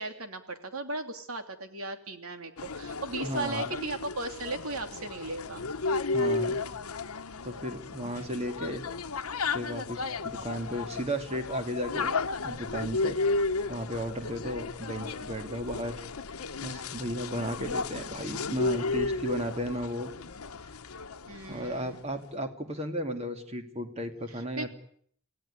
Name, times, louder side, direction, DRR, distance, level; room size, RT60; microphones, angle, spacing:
voice 1, 0.0-5.7 8.2-8.3 21.3-22.0 24.3-24.7, right 2 dB, 80° right, 7 dB, 2.9 m, -37 dB
sound 1, 2.6-21.8, left 3 dB, 85° left, 1.0 m, -34 dB
voice 2, 3.2-3.7 6.1-6.6 7.4-8.8 9.5-12.1 12.4-13.2 13.7-16.0 16.6-20.1 21.5-24.7, equal, 30° right, 6 dB, 2.6 m, -34 dB
27.5 x 17.0 x 9.9 m, 0.65 s
head